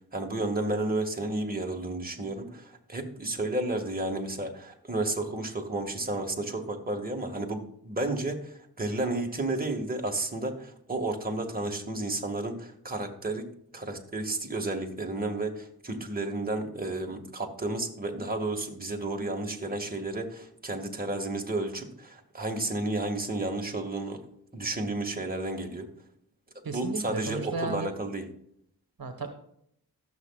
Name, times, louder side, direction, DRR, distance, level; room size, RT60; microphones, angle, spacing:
voice 1, 0.1-13.5 13.7-24.3 24.5-25.9 26.7-28.3, right 2 dB, 25° right, 2 dB, 2.0 m, -32 dB
voice 2, 26.6-27.9 29.0-29.3, right 3 dB, 65° right, 6 dB, 1.3 m, -34 dB
15.0 x 7.2 x 2.4 m, 0.71 s
cardioid pair, 55°, 38 cm